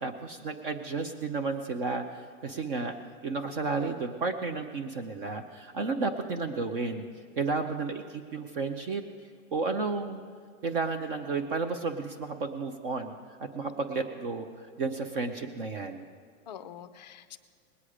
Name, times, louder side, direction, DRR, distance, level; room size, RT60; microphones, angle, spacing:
voice 1, 0.0-2.0 2.4-2.9 3.2-7.0 7.4-9.0 9.5-10.2 10.6-13.2 13.5-14.5 14.8-16.0, right 4 dB, 40° right, 6 dB, 0.7 m, -32 dB
voice 2, 13.6-14.1 16.5-17.4, left 8 dB, 30° left, 11 dB, 0.4 m, -46 dB
20.0 x 8.4 x 4.9 m, 2.1 s
hypercardioid pair, 160°, 43 cm